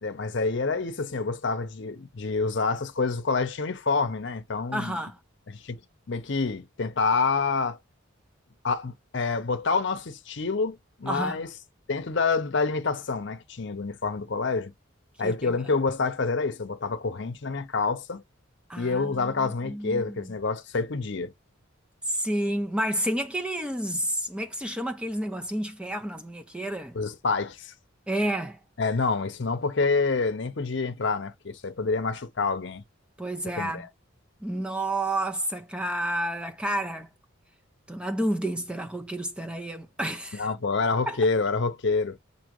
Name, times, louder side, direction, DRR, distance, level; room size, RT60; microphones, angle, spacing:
voice 1, 0.0-5.0 5.5-5.8 6.1-7.8 8.6-11.5 11.9-14.7 15.2-18.2 18.8-21.3 26.9-27.7 28.8-32.8 33.6-33.9 40.3-42.2, left 4 dB, 55° left, 0.7 m, -27 dB
voice 2, 4.7-5.2 11.1-11.4 15.2-15.6 18.7-20.3 22.1-27.0 28.1-28.6 33.2-33.9 34.4-37.1 37.9-40.5 41.1-41.2, right 1 dB, 5° right, 0.4 m, -30 dB
6.3 x 2.7 x 2.9 m
head